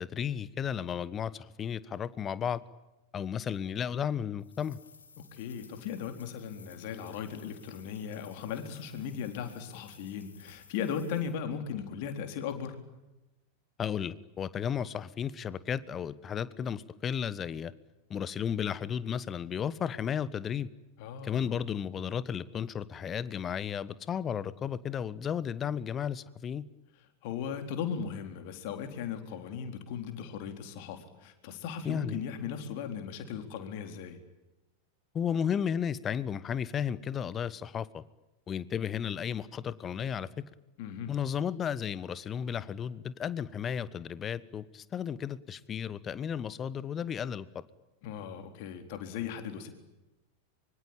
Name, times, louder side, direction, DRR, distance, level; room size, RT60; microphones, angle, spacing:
voice 1, 0.0-2.6 3.1-4.8 13.8-17.7 18.1-20.7 21.2-26.6 31.8-32.2 35.1-38.0 38.5-40.3 41.1-47.5, left 8 dB, 25° left, 18 dB, 1.2 m, -33 dB
sound 1, 4.4-11.4, left 5 dB, 70° left, 3.1 m, -56 dB
voice 2, 5.2-12.7 21.0-21.5 27.2-34.2 40.8-41.1 48.0-49.7, left 7 dB, 50° left, 7 dB, 4.0 m, -37 dB
25.0 x 24.5 x 9.0 m, 1.0 s
figure-of-eight pair, 90°, 0 cm